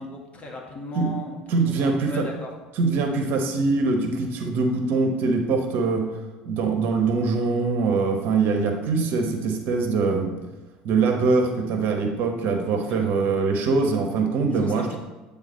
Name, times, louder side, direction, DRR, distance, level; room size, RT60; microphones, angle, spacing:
voice 1, 0.0-1.4 1.7-2.5 12.8-13.1 14.5-15.0, left 2 dB, 35° left, 1 dB, 1.7 m, -37 dB
voice 2, 1.5-2.3 2.8-6.1 6.4-10.4 10.8-15.0, right 4 dB, 55° right, 4 dB, 1.1 m, -23 dB
9.1 x 3.7 x 4.2 m, 1.2 s
figure-of-eight pair, 65°, 4 cm